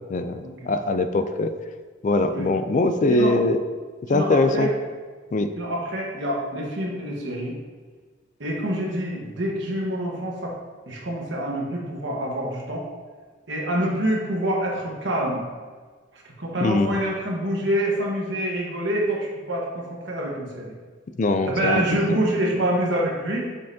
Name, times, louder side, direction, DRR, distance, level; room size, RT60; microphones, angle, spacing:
voice 1, 0.1-1.5 2.0-3.6 4.1-4.7 5.3-5.5 16.6-16.9 21.2-21.8 22.1-22.2, left 2 dB, 40° left, 9 dB, 0.3 m, -22 dB
voice 2, 4.1-4.7 5.6-7.5 8.4-10.5 10.9-12.8 13.5-15.4 16.1-20.7 21.4-23.5, right 1 dB, 60° right, -2 dB, 1.3 m, -26 dB
6.9 x 5.5 x 2.7 m, 1.5 s
head